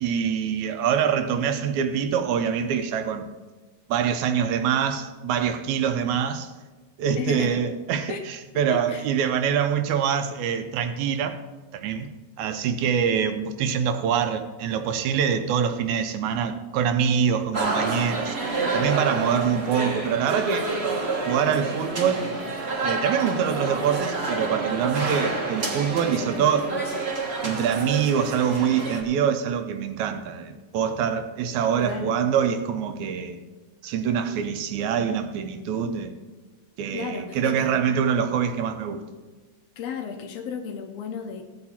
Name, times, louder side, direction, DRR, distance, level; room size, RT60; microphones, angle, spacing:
voice 1, 0.0-3.3 3.9-6.5 7.0-11.4 11.7-18.4 18.7-20.7 21.3-22.3 22.8-26.7 27.4-33.4 33.8-36.1 36.8-39.0, right 7 dB, 80° right, 2.1 m, -25 dB
voice 2, 7.1-7.7 8.1-8.3 8.7-9.1 26.1-27.1 31.8-32.1 36.9-37.8 39.8-41.4, left 6 dB, 70° left, 1.7 m, -34 dB
sound 1, 17.5-29.0, right 3 dB, 40° right, 0.9 m, -28 dB
16.0 x 8.7 x 4.3 m
omnidirectional pair, 3.4 m